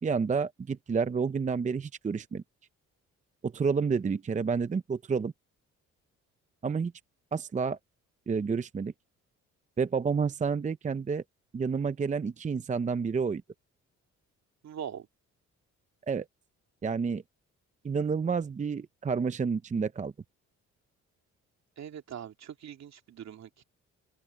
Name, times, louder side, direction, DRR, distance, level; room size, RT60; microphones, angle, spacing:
voice 1, 0.0-2.4 3.4-5.3 6.6-6.9 7.3-7.8 8.3-8.9 9.8-11.2 11.5-13.4 16.1-16.3 16.8-17.2 17.8-20.1, right 5 dB, 25° right, 0.6 m, -29 dB
voice 2, 14.6-15.1 21.8-23.6, right 9 dB, 60° right, 2.7 m, -42 dB
open air
cardioid pair, 90°, 30 cm